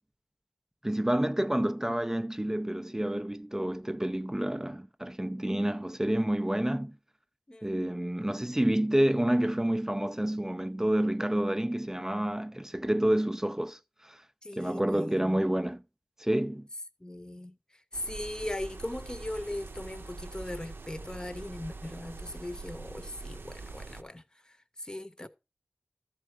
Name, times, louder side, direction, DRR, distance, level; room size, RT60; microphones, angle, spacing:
voice 1, 0.8-7.0 7.6-14.2 14.6-15.8 16.2-16.7, right 1 dB, 15° right, 0.4 m, -29 dB
voice 2, 7.5-7.8 14.4-15.4 17.0-25.3, left 1 dB, 20° left, 0.8 m, -39 dB
sound 1, 17.9-24.0, right 3 dB, 75° right, 0.6 m, -44 dB
13.5 x 4.6 x 4.7 m
wide cardioid pair, 50°, 4 cm